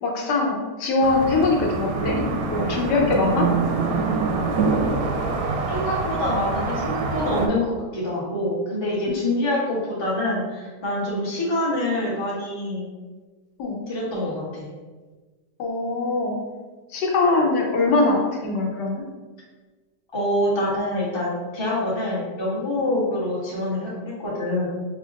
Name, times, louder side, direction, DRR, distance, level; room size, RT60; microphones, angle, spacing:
voice 1, 0.0-3.5 9.1-9.2 13.6-13.8 15.6-16.4 16.9-19.0, left 3 dB, 85° left, 0 dB, 1.3 m, -22 dB
sound 1, 1.0-7.5, right 4 dB, 70° right, 1.0 m, -25 dB
voice 2, 5.7-12.9 13.9-14.7 20.1-24.7, left 1 dB, 20° left, -6 dB, 0.7 m, -26 dB
4.8 x 2.8 x 2.5 m, 1.3 s
omnidirectional pair, 1.8 m